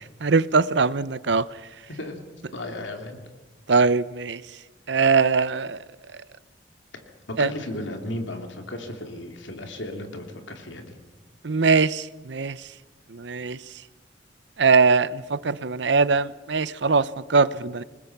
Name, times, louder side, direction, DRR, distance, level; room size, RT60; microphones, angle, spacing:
voice 1, 0.2-1.5 3.7-4.4 4.9-5.8 7.4-7.5 11.4-12.7 13.1-13.6 14.6-17.8, right 4 dB, 65° right, 0.7 m, -21 dB
voice 2, 1.9-2.2 2.5-3.2 6.9-7.0 7.3-11.0, left 1 dB, 75° left, 2.8 m, -35 dB
27.0 x 20.0 x 5.9 m
head